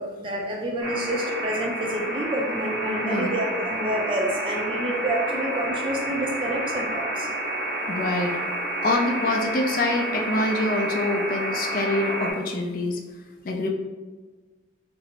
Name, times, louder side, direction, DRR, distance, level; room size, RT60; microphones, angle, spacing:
voice 1, 0.0-7.3, right 1 dB, 25° right, 0 dB, 0.4 m, -28 dB
sound 1, 0.8-12.3, right 1 dB, 85° right, 0.9 m, -29 dB
voice 2, 3.0-3.3 7.9-8.4 8.8-13.0 13.4-13.7, left 2 dB, 45° left, 2 dB, 0.3 m, -25 dB
3.0 x 2.6 x 2.8 m, 1.3 s
head